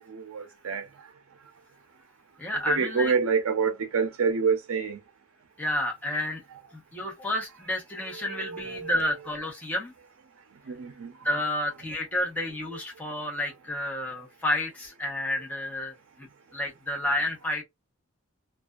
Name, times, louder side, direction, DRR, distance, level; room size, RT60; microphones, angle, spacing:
voice 1, 0.1-0.9 2.7-5.0 8.3-8.9 10.7-11.1, right 5 dB, 80° right, 0.5 m, -27 dB
voice 2, 2.4-3.1 5.6-6.4 6.7-9.9 11.2-17.6, left 1 dB, 5° left, 0.9 m, -30 dB
2.5 x 2.2 x 2.3 m
head